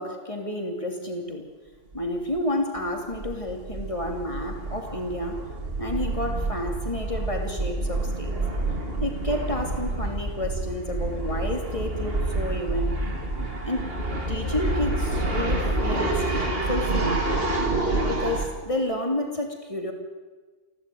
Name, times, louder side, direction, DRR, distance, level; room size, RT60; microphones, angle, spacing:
voice 1, 0.0-1.5 1.9-5.4 5.8-8.3 9.0-13.0 13.7-13.9 14.3-16.3 16.6-17.2 18.0-19.9, left 1 dB, 25° left, 3 dB, 3.2 m, -30 dB
sound 1, 1.9-2.1 2.3-2.4 2.8-18.5, right 2 dB, 45° right, 3.2 m, -28 dB
29.0 x 12.0 x 9.4 m, 1.4 s
omnidirectional pair, 1.4 m